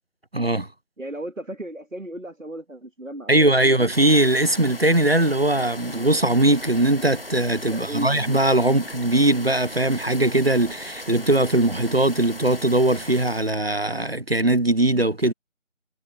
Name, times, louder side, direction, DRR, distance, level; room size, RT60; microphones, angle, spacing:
voice 1, 0.3-0.7 3.3-15.3, right 1 dB, 50° right, 0.9 m, -20 dB
voice 2, 1.0-3.8 7.7-8.3, right 1 dB, 75° right, 2.2 m, -35 dB
sound 1, 3.9-13.5, left 1 dB, 45° left, 1.1 m, -38 dB
figure-of-eight pair, 175°, 40 cm